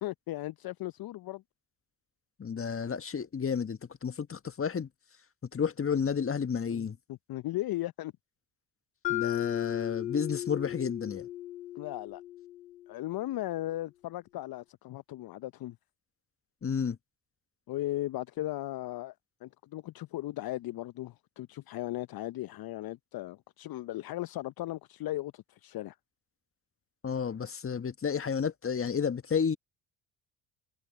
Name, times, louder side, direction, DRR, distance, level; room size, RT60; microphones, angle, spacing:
voice 1, 0.0-1.4 6.7-8.1 11.7-12.2 12.9-15.8 17.7-19.1 19.4-26.0, left 15 dB, 50° left, 0.8 m, -37 dB
voice 2, 2.4-4.9 5.5-7.0 9.1-11.3 16.6-17.0 27.0-29.6, left 6 dB, 25° left, 1.5 m, -31 dB
Mallet percussion, 9.0-13.1, left 14 dB, 90° left, 2.2 m, -36 dB
hypercardioid pair, 55°, 48 cm